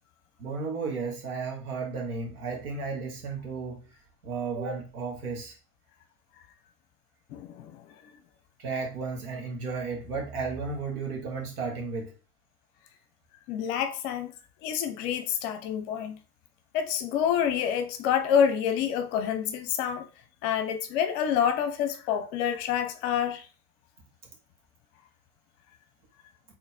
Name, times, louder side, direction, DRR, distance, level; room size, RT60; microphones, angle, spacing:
voice 1, 0.4-3.9 4.2-5.6 8.6-12.1, right 4 dB, 70° right, 1.9 m, -33 dB
voice 2, 7.3-7.8 13.5-14.3 14.6-16.2 16.7-20.1 20.4-23.5, left 8 dB, 45° left, 0.9 m, -27 dB
4.5 x 3.5 x 3.4 m
figure-of-eight pair, 90°, 46 cm